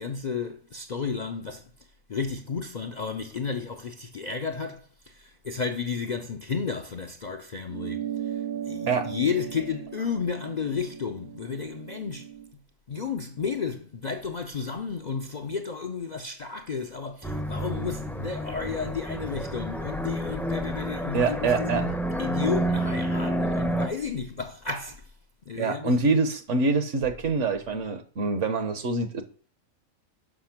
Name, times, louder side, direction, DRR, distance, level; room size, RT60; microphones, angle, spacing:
voice 1, 0.0-1.7 2.1-12.6 12.9-25.1 25.5-26.1, left 5 dB, 50° left, 0.5 m, -32 dB
sound 1, 7.7-12.5, right 10 dB, 85° right, 1.2 m, -37 dB
sound 2, 17.2-23.9, right 1 dB, ahead, 0.5 m, -29 dB
voice 2, 21.1-21.8 25.6-29.2, right 3 dB, 65° right, 1.3 m, -25 dB
6.2 x 5.7 x 5.9 m
omnidirectional pair, 1.4 m